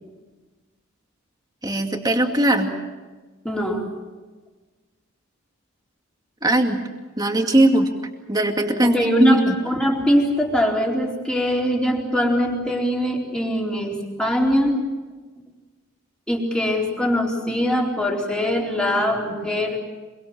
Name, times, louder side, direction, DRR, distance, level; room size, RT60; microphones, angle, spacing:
voice 1, 1.6-2.7 6.4-6.8 7.2-7.9 8.3-9.5, right 1 dB, 20° right, 3 dB, 2.4 m, -19 dB
voice 2, 3.4-3.8 8.8-14.8 16.3-19.8, equal, 5° left, -1 dB, 4.3 m, -22 dB
25.5 x 23.5 x 7.4 m, 1.3 s
head